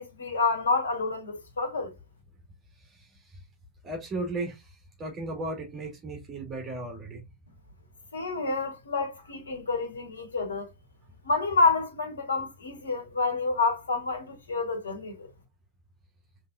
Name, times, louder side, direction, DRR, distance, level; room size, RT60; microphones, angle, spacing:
voice 1, 0.0-1.9 8.1-10.7 11.2-15.3, left 3 dB, 70° left, 1.7 m, -28 dB
voice 2, 2.7-3.4 3.8-7.2, right 2 dB, 25° right, 2.6 m, -36 dB
5.4 x 3.7 x 2.5 m
figure-of-eight pair, 90°, 0 cm